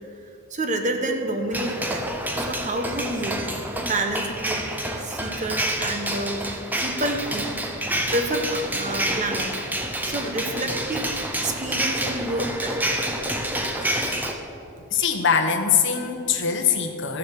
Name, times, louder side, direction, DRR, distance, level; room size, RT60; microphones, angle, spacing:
voice 1, 0.1-2.1 2.3-3.5 3.8-4.7 5.0-7.6 8.1-9.7 10.0-11.1 11.4-12.8, right 1 dB, 35° right, 5 dB, 1.0 m, -29 dB
sound 1, 1.5-14.3, right 1 dB, 10° right, 0.8 m, -28 dB
voice 2, 13.8-14.3 14.9-17.2, left 6 dB, 55° left, 4 dB, 1.2 m, -23 dB
14.0 x 7.3 x 6.7 m, 2.9 s
head